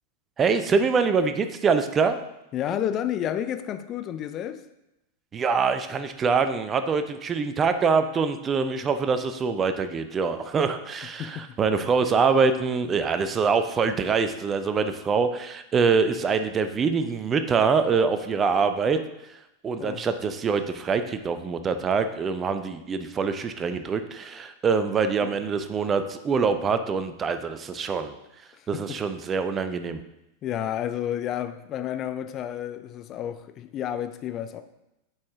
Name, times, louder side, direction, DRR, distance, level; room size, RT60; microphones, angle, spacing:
voice 1, 0.4-2.2 5.3-19.0 19.6-28.1 28.7-30.0, right 5 dB, 25° right, 0.5 m, -24 dB
voice 2, 2.5-4.6 11.2-11.9 19.8-20.0 25.2-25.4 28.5-29.0 30.4-34.6, left 10 dB, 30° left, 0.4 m, -31 dB
8.5 x 4.8 x 3.6 m
figure-of-eight pair, 90°, 0 cm